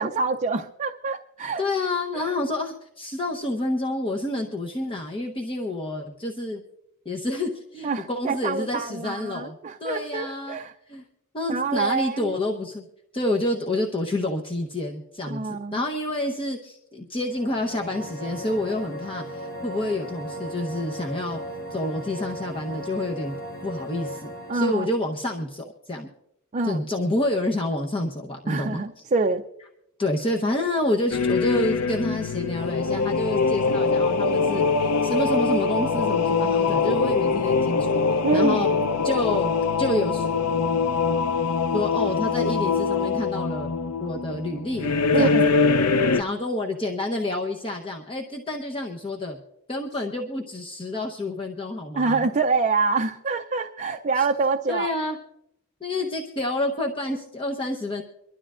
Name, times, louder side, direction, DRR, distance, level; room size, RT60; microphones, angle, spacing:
voice 1, 0.0-1.6 2.1-2.3 7.8-10.7 11.5-12.3 15.3-15.8 24.5-24.9 26.5-26.8 28.5-29.4 38.2-38.7 45.1-45.5 52.0-54.9, right 4 dB, 35° right, 5 dB, 0.5 m, -26 dB
voice 2, 1.6-6.6 7.0-10.6 10.9-11.0 11.3-12.8 13.1-21.4 21.7-23.4 23.6-26.1 26.6-28.8 30.0-38.0 38.3-38.7 39.0-39.5 39.8-40.3 41.7-43.7 44.0-45.6 46.1-49.4 49.7-52.3 54.2-54.3 54.7-55.2 55.8-58.0, left 1 dB, 25° left, -1 dB, 0.9 m, -28 dB
sound 1, 17.2-25.0, equal, 50° left, 3.3 m, -36 dB
sound 2, 31.1-46.2, left 4 dB, 90° left, 0.6 m, -23 dB
24.0 x 12.5 x 2.5 m, 0.80 s
head